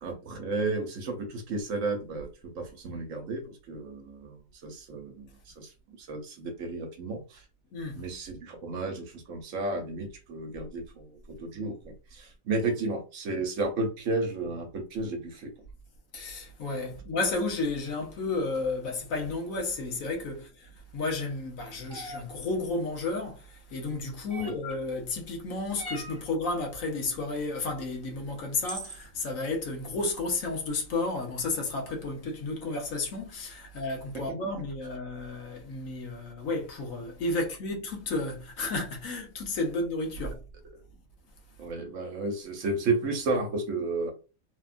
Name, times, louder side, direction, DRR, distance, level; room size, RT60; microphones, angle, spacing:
voice 1, 0.0-4.4 4.6-7.4 7.9-15.5 24.3-24.5 34.1-34.4 41.6-44.1, right 3 dB, 70° right, 1.1 m, -33 dB
voice 2, 7.7-8.0 16.1-40.4, left 3 dB, 75° left, 1.3 m, -32 dB
sound 1, 21.9-22.2 24.3-24.7 25.8-26.2 27.9-28.0 28.6-29.0, right 1 dB, 30° right, 0.6 m, -40 dB
3.3 x 2.3 x 2.4 m
omnidirectional pair, 1.5 m